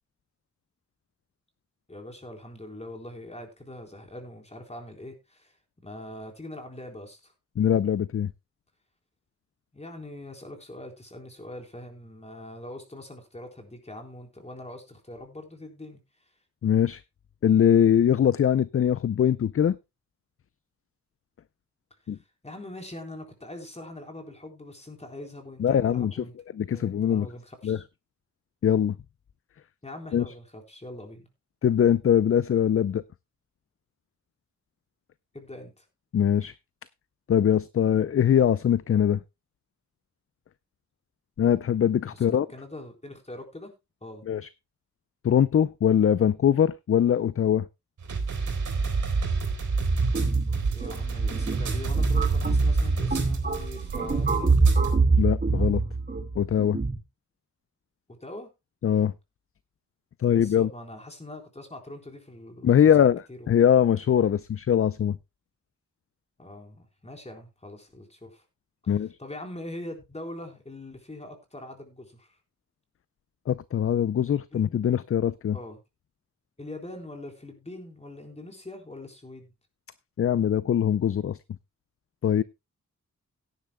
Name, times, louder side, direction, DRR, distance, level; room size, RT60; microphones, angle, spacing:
voice 1, 1.9-5.5 5.8-7.3 9.7-16.0 22.4-26.3 26.7-27.9 29.8-31.3 35.3-35.8 42.1-43.7 44.0-44.2 50.7-54.7 58.2-58.5 60.3-63.4 66.4-68.4 68.8-72.4 74.5-74.6 75.5-75.8 76.6-79.5, left 1 dB, 20° left, 3.9 m, -42 dB
voice 2, 7.6-8.3 16.6-17.0 17.4-19.8 22.1-22.2 25.6-26.2 26.5-27.3 27.6-27.8 28.6-29.0 30.1-30.3 31.6-33.0 36.1-36.5 37.3-39.2 41.4-42.5 44.3-44.4 45.2-47.6 55.2-55.8 56.4-56.8 58.8-59.1 60.2-60.7 62.6-63.2 63.5-65.2 68.9-69.1 73.5-75.6 80.2-81.4 82.2-82.4, left 9 dB, 45° left, 0.5 m, -22 dB
sound 1, 48.0-55.0, right 4 dB, 80° right, 3.6 m, -29 dB
sound 2, 49.9-57.0, right 3 dB, 30° right, 1.9 m, -25 dB
17.0 x 10.5 x 2.2 m
wide cardioid pair, 90°, 30 cm